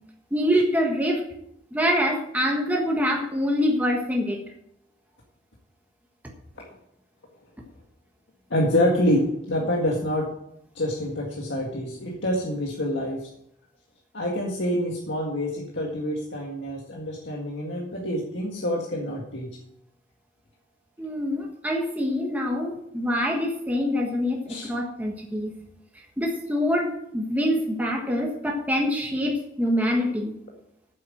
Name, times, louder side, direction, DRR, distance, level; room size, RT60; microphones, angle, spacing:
voice 1, 0.3-1.2 1.7-4.4 21.0-25.6 26.2-30.3, equal, 10° right, 0 dB, 1.5 m, -25 dB
voice 2, 8.5-10.3 10.8-13.3 14.1-19.5 24.5-24.7, left 1 dB, 70° left, -2 dB, 1.9 m, -26 dB
9.3 x 7.5 x 7.7 m, 0.75 s
head